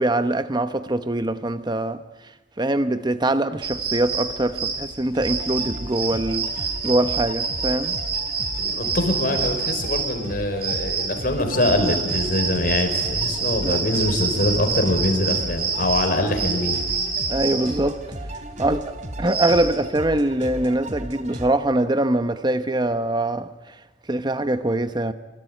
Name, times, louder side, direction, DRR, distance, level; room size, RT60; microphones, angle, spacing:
voice 1, 0.0-8.0 13.6-13.9 17.3-18.0 18.6-18.9 19.2-23.8 24.1-25.1, right 1 dB, 25° right, 0.9 m, -23 dB
sound 1, 3.6-19.6, right 5 dB, 60° right, 7.7 m, -27 dB
sound 2, 5.1-21.5, right 1 dB, 45° right, 3.1 m, -36 dB
voice 2, 8.6-16.8, left 1 dB, 55° left, 5.4 m, -23 dB
25.5 x 24.5 x 9.2 m
head